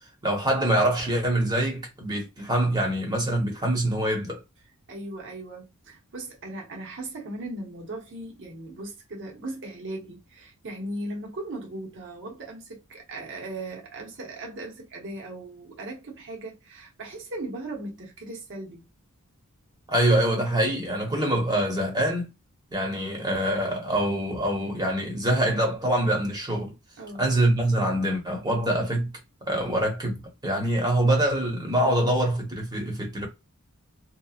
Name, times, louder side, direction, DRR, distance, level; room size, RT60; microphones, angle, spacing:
voice 1, 0.2-4.4 19.9-22.3 22.7-26.7 27.2-29.1 29.5-33.3, right 1 dB, 20° right, 1.0 m, -25 dB
voice 2, 4.9-18.8 27.0-27.2, right 2 dB, 55° right, 1.0 m, -38 dB
2.9 x 2.2 x 2.4 m
head